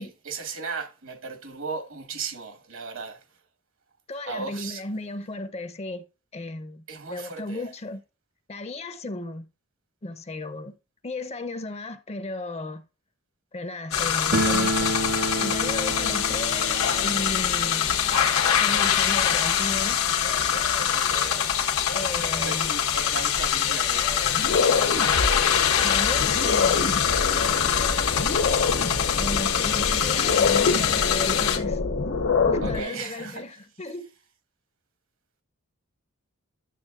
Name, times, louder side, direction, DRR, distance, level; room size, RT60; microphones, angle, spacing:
voice 1, 0.0-3.2 4.3-4.8 6.9-7.7 20.9-21.4 22.4-24.7 32.6-33.4, right 4 dB, 65° right, 1.3 m, -36 dB
voice 2, 4.1-6.0 6.3-8.0 8.5-9.5 10.0-10.7 11.0-12.8 13.5-15.0 15.4-17.9 18.5-20.1 21.9-22.7 25.8-27.0 29.2-32.1 32.5-34.1, left 2 dB, 30° left, 0.6 m, -35 dB
sound 1, 13.9-31.6, left 9 dB, 80° left, 1.1 m, -24 dB
sound 2, 14.3-21.0 21.3-21.4 21.6-21.7 22.5-22.6 22.9-24.1, right 1 dB, 45° right, 0.7 m, -31 dB
sound 3, 23.4-23.5 24.0-32.8, left 4 dB, 60° left, 0.9 m, -26 dB
11.0 x 6.9 x 2.4 m
head